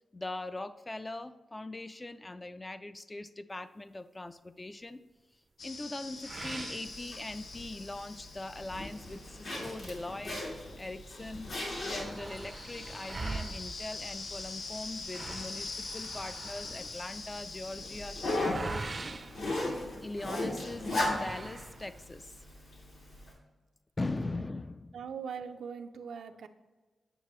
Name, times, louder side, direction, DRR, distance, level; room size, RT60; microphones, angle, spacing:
voice 1, 0.1-5.0 5.6-10.4 10.8-19.2 20.0-22.4 24.0-25.0, left 2 dB, 20° left, 11 dB, 0.4 m, -41 dB
sound 1, 5.6-18.4, left 3 dB, 60° left, 0.7 m, -45 dB
sound 2, 6.2-7.7 8.1-8.2 8.7-8.8 9.6-10.9 11.2-11.3 11.5-20.3 21.0-22.1, right 3 dB, 35° right, 0.5 m, -43 dB
Zipper (clothing), 6.8-23.3, left 1 dB, 80° left, 2.6 m, -39 dB
voice 2, 24.9-26.5, right 6 dB, 85° right, 7 dB, 0.5 m, -41 dB
8.9 x 6.6 x 3.1 m, 1.3 s
wide cardioid pair, 100°, 0 cm